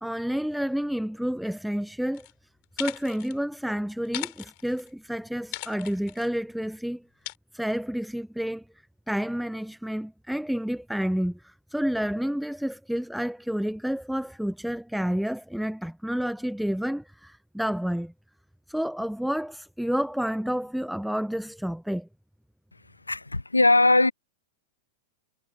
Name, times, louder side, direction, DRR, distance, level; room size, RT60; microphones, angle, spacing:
voice 1, 0.0-2.3 2.7-7.0 7.5-8.6 9.1-18.1 18.7-22.1, equal, ahead, 1.0 m, -30 dB
sound 1, 2.1-2.3 2.6-3.4 4.0-4.9 5.5-6.3 7.2-7.3, left 34 dB, 50° left, 5.4 m, -38 dB
voice 2, 23.1-24.1, left 2 dB, 90° left, 1.3 m, -20 dB
figure-of-eight pair, 95°, 0 cm